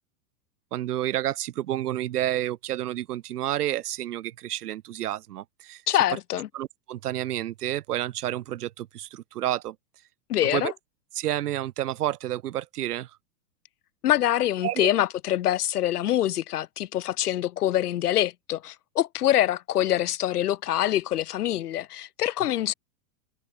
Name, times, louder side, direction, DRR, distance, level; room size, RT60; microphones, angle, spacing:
voice 1, 0.7-5.8 6.5-9.8 10.5-10.7 11.1-13.1 14.6-14.9, right 13 dB, 65° right, 2.7 m, -30 dB
voice 2, 5.9-6.5 10.3-10.7 14.0-22.7, left 12 dB, 65° left, 5.4 m, -25 dB
supercardioid pair, 175°, 48 cm